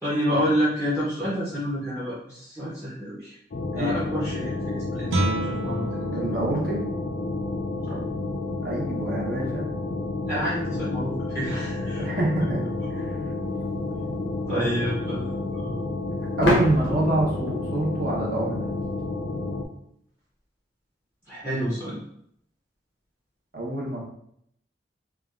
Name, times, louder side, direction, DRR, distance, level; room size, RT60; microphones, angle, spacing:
voice 1, 0.0-3.4 3.7-6.4 7.8-8.0 10.3-12.8 14.5-15.8 21.3-22.0, equal, 10° right, -7 dB, 0.6 m, -29 dB
sound 1, 3.5-19.6, left 2 dB, 50° left, 0.4 m, -30 dB
Guitar, 5.1-10.6, right 2 dB, 90° right, 0.5 m, -34 dB
voice 2, 6.1-6.8 8.6-9.6 12.0-12.6 12.9-13.2 14.5-14.8 16.4-18.7 23.5-24.0, right 1 dB, 55° right, -2 dB, 0.8 m, -26 dB
sound 2, 13.4-13.5 16.4-19.1, left 1 dB, 90° left, 0.8 m, -29 dB
3.2 x 2.3 x 2.3 m, 0.70 s
head